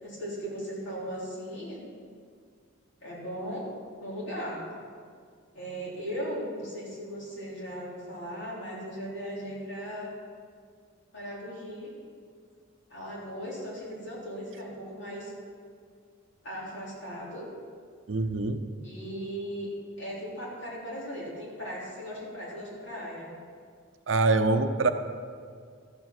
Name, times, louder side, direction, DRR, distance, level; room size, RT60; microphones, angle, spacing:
voice 1, 0.0-1.8 3.0-3.7 4.0-4.6 5.5-10.1 11.1-11.9 12.9-15.3 16.4-17.5 18.8-19.7 20.0-23.3, equal, 60° left, -6 dB, 3.5 m, -37 dB
voice 2, 18.1-18.6 24.1-24.9, right 3 dB, 60° right, 8 dB, 0.6 m, -24 dB
13.0 x 7.2 x 6.0 m, 2.1 s
head